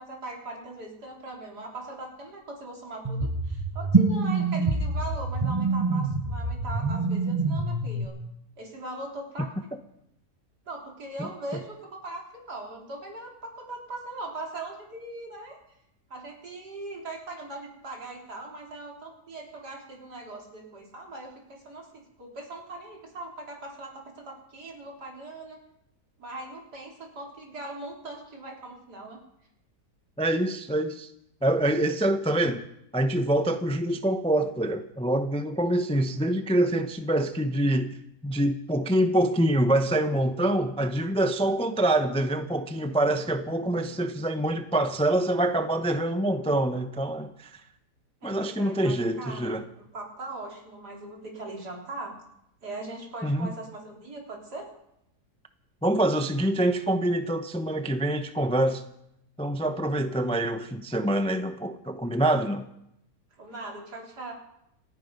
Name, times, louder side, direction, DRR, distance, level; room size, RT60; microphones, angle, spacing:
voice 1, 0.0-8.1 8.6-9.5 10.7-15.6 16.1-25.6 26.2-29.2 48.2-49.6 49.9-52.1 52.6-54.7 63.4-64.3, right 2 dB, 80° right, 4.1 m, -40 dB
sound 1, 3.0-8.0, right 3 dB, 20° right, 1.1 m, -26 dB
voice 2, 30.2-31.1 31.4-32.6 32.9-37.9 38.2-47.6 48.2-49.6 53.2-53.5 55.8-58.8 59.4-62.6, right 1 dB, 5° left, 0.5 m, -25 dB
27.5 x 9.5 x 5.3 m
omnidirectional pair, 1.7 m